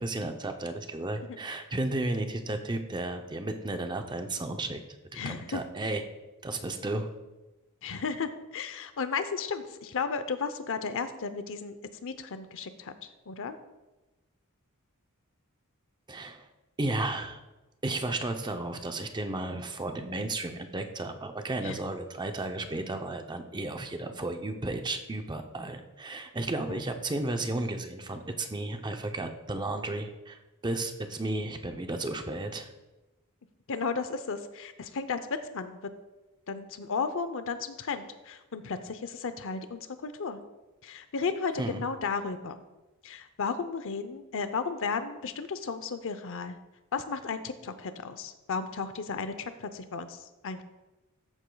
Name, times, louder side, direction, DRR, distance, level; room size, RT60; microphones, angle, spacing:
voice 1, 0.0-4.8 5.1-6.0 6.4-7.1 16.1-16.5 16.8-17.4 17.8-30.4 30.6-32.7 41.6-41.9, right 2 dB, 20° right, 6 dB, 0.6 m, -33 dB
voice 2, 5.1-5.6 7.8-11.8 12.0-13.6 21.6-21.8 26.7-26.8 33.7-35.2 35.5-35.8 36.5-40.4 40.8-42.6 43.0-46.6 46.9-50.6, left 5 dB, 65° left, 10 dB, 0.7 m, -34 dB
13.5 x 8.2 x 2.3 m, 1.1 s
head